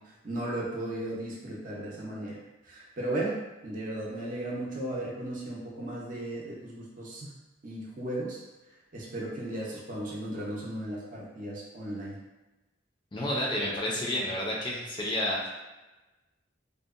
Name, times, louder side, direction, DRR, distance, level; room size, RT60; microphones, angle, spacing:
voice 1, 0.2-2.4 2.6-3.4 3.6-7.3 7.6-8.4 8.9-12.2, right 1 dB, 45° right, -4 dB, 0.6 m, -35 dB
voice 2, 13.1-15.5, left 1 dB, 25° left, -4 dB, 0.4 m, -30 dB
2.7 x 2.1 x 2.4 m, 1.1 s
head